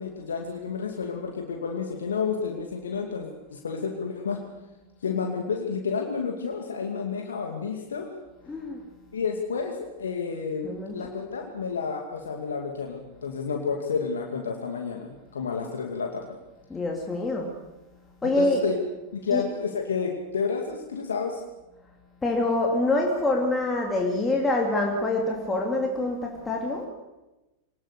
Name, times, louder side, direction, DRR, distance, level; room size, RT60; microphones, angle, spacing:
voice 1, 0.0-4.4 5.0-8.1 9.1-16.4 18.2-18.8 19.1-21.4, left 5 dB, 70° left, 2 dB, 2.4 m, -30 dB
voice 2, 8.5-8.8 10.6-11.0 16.7-17.5 18.2-18.7 19.3-19.4 22.2-26.9, left 2 dB, 10° left, -1 dB, 3.2 m, -25 dB
24.0 x 19.5 x 6.9 m, 1.0 s
figure-of-eight pair, 90°, 0 cm